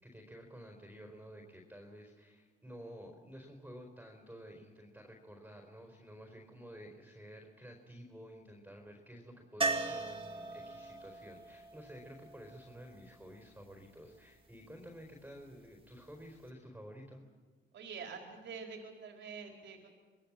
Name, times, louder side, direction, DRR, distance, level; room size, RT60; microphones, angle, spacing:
voice 1, 0.0-17.2, equal, 10° right, 2 dB, 4.4 m, -51 dB
sound 1, 9.6-13.5 16.1-16.2 16.5-16.6, right 3 dB, 25° right, 2.4 m, -38 dB
voice 2, 17.7-19.9, right 5 dB, 65° right, 2 dB, 4.2 m, -46 dB
25.5 x 20.0 x 7.6 m, 1.4 s
cardioid pair, 90°, 20 cm